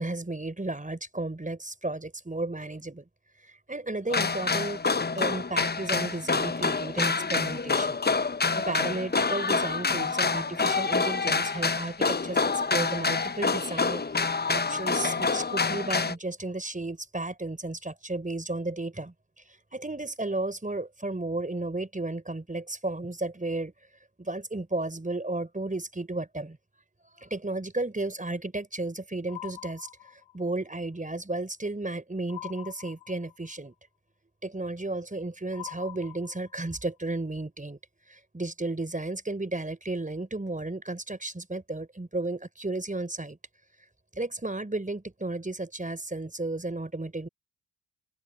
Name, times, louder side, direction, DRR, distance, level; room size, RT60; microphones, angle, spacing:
voice 1, 0.0-3.1 3.4-4.8 5.1-8.0 8.6-19.1 19.7-23.7 24.2-26.6 27.1-29.9 30.3-33.7 34.4-37.8 38.1-43.4 44.1-47.3, right 2 dB, 15° right, 4.7 m, -33 dB
sound 1, 4.1-16.1, left 4 dB, 20° left, 1.2 m, -27 dB
sound 2, 29.3-30.5 32.3-33.5 35.5-36.8, left 15 dB, 70° left, 4.8 m, -44 dB
open air
hypercardioid pair, 45°, 48 cm